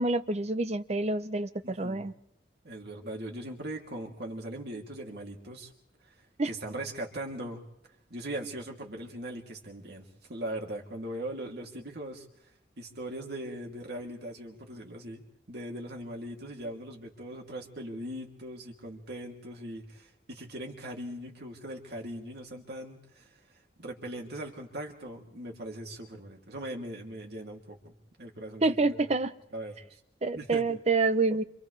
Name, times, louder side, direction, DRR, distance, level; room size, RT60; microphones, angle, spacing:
voice 1, 0.0-2.1 6.4-6.5 28.6-29.3 30.2-31.4, right 3 dB, 35° right, 11 dB, 0.8 m, -27 dB
voice 2, 1.6-2.0 2.6-5.7 6.0-6.1 6.4-7.6 8.1-12.2 12.8-23.4 23.8-27.9 28.2-29.0 29.5-30.0 30.3-30.7, right 1 dB, 60° right, 1 dB, 3.0 m, -40 dB
29.0 x 26.5 x 3.4 m, 0.79 s
head